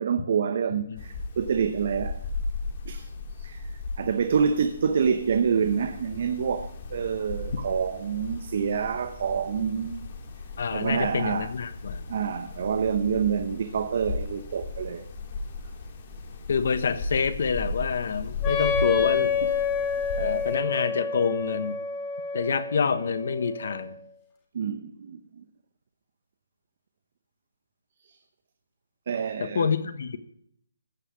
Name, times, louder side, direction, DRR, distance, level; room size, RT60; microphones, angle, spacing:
voice 1, 0.0-2.2 2.8-3.1 3.4-3.6 4.0-10.0 10.7-11.5 12.1-15.1 24.5-25.4 28.0-28.2 29.1-29.7, right 7 dB, 45° right, 0.9 m, -27 dB
sound 1, 1.0-20.6, left 3 dB, 30° left, 2.1 m, -36 dB
voice 2, 10.6-12.0 16.5-19.3 20.2-21.8 22.3-24.0 29.4-30.2, left 5 dB, 50° left, 1.2 m, -27 dB
Wind instrument woodwind instrument, 18.4-24.1, left 6 dB, 15° left, 2.1 m, -29 dB
15.5 x 5.7 x 8.6 m
hypercardioid pair, 170°, 0 cm